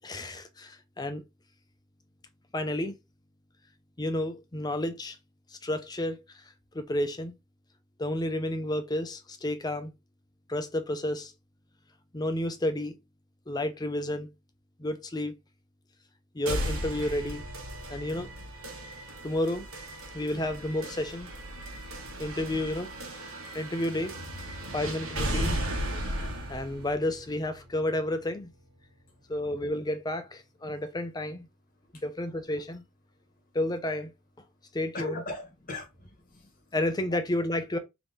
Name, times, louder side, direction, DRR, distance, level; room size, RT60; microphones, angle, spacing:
voice 1, 0.0-1.2 2.5-2.9 4.0-5.2 5.5-6.4 6.7-7.3 8.0-9.9 10.5-11.3 12.1-12.9 13.5-14.3 14.8-15.3 16.3-17.4 17.9-18.3 19.2-19.7 20.1-21.3 22.2-24.1 24.7-25.6 26.5-28.5 29.3-31.5 32.0-32.8 33.5-34.1 34.7-35.2 36.7-37.8, left 1 dB, 20° left, 0.5 m, -31 dB
sound 1, 16.5-28.4, right 1 dB, 75° right, 1.4 m, -36 dB
voice 2, 34.9-36.7 37.1-37.2, left 2 dB, 40° left, 1.2 m, -40 dB
3.6 x 3.0 x 3.8 m
head